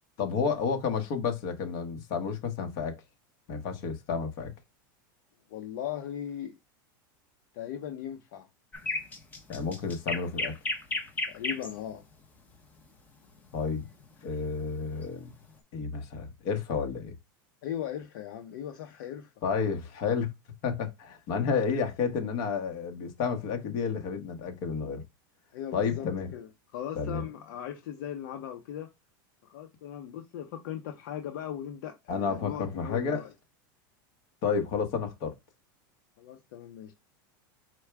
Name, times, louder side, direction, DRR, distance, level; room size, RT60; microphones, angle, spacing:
voice 1, 0.2-3.0 3.5-4.5 9.5-10.6 13.5-13.8 14.2-15.3 15.7-17.1 19.4-20.3 20.6-25.0 25.7-26.3 26.9-27.2 32.1-33.2 34.4-35.3, left 5 dB, 50° left, 1.2 m, -31 dB
voice 2, 5.5-6.6 7.5-8.5 11.3-12.0 17.6-19.3 25.5-26.1 26.3-28.9 29.4-33.3 36.2-36.9, left 10 dB, 65° left, 0.8 m, -38 dB
sound 1, 8.7-11.7 13.8-14.0, left 2 dB, 15° left, 0.8 m, -33 dB
4.5 x 2.2 x 4.6 m
supercardioid pair, 145°, 11 cm